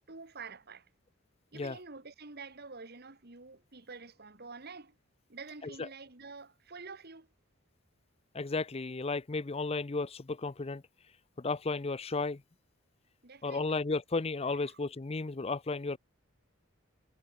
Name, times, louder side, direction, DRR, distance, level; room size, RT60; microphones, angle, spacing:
voice 1, 0.1-0.9 1.5-5.0 5.3-7.3 13.2-13.8 14.5-14.8, right 4 dB, 50° right, 2.0 m, -48 dB
voice 2, 8.3-10.8 11.4-12.4 13.4-16.0, left 3 dB, 30° left, 0.6 m, -34 dB
head